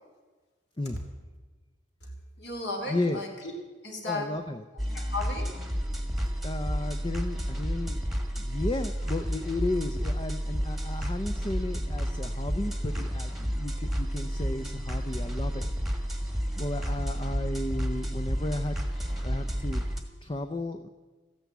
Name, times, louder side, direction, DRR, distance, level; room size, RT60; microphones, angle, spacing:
voice 1, 2.4-3.5 3.8-4.3 4.9-5.5, left 2 dB, 60° left, 2 dB, 3.0 m, -35 dB
voice 2, 2.9-3.2 4.0-4.6 6.4-8.0 8.4-15.7 16.2-18.8 19.2-19.8 20.2-20.9, left 2 dB, 25° left, 8 dB, 0.6 m, -34 dB
sound 1, 4.8-20.0, equal, ahead, 1.4 m, -31 dB
13.5 x 10.5 x 8.1 m, 1.3 s
head